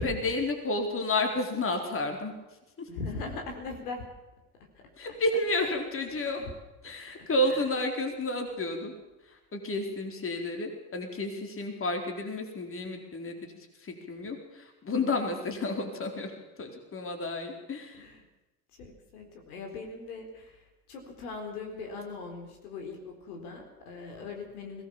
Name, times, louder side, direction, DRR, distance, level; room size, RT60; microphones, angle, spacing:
voice 1, 0.0-2.3 2.8-2.9 5.0-6.4 6.8-8.9 9.3-13.5 13.8-16.3 16.6-18.0, left 2 dB, 30° left, 3 dB, 4.2 m, -31 dB
voice 2, 2.9-4.0 5.5-5.7 6.4-6.5 7.4-7.6 18.0-18.2 18.8-20.6 20.9-24.8, left 3 dB, 70° left, 2 dB, 4.2 m, -39 dB
21.0 x 18.0 x 7.2 m, 1.0 s
figure-of-eight pair, 70°, 46 cm